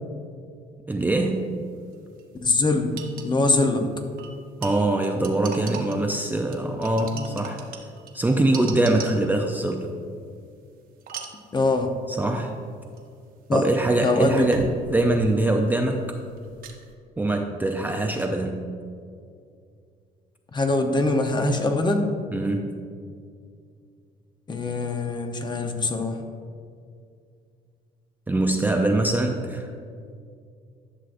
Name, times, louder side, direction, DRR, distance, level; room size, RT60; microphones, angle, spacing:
voice 1, 0.9-1.5 4.6-7.6 8.1-9.9 12.1-12.6 13.5-16.2 17.2-18.6 22.3-22.7 28.3-29.7, right 2 dB, 10° right, 2 dB, 0.4 m, -23 dB
sound 1, 1.9-2.0 2.2-2.3 3.0-3.3 4.2-6.2 6.5-9.4 11.0-11.5 13.0-13.1 14.4-15.8 16.1-16.9, right 6 dB, 55° right, 0.9 m, -39 dB
voice 2, 2.4-2.9 3.2-3.9 7.1-7.3 11.5-11.9 13.5-13.6 14.0-14.5 20.5-22.1 24.5-26.2, left 2 dB, 25° left, 5 dB, 0.8 m, -23 dB
11.0 x 6.3 x 2.5 m, 2.3 s
cardioid pair, 110°, 17 cm